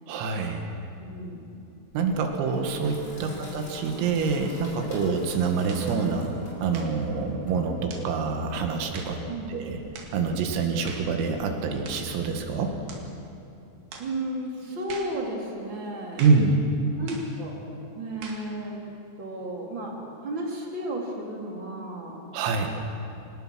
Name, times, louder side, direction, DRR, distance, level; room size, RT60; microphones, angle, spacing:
voice 1, 0.1-0.7 1.9-6.3 6.6-9.2 9.5-9.8 10.1-12.8 16.2-16.7 22.3-22.7, right 4 dB, 80° right, 4 dB, 4.6 m, -26 dB
voice 2, 1.0-1.5 3.3-3.5 9.3-9.6 14.0-16.2 17.0-17.6 17.9-18.8 19.2-22.2, right 1 dB, 30° right, -1 dB, 2.9 m, -34 dB
Sink (filling or washing), 1.9-12.9, equal, 20° left, 5.3 m, -47 dB
sound 1, 5.7-5.9 6.7-7.0 7.9-8.1 8.9-9.2 9.9-10.2 10.8-11.1 11.8-12.1 12.9-13.1 13.9-14.1 14.9-15.2 16.2-16.5 17.1-17.3 18.2-18.5, right 4 dB, 55° right, 3.4 m, -42 dB
25.5 x 19.0 x 6.3 m, 2.8 s
omnidirectional pair, 6.0 m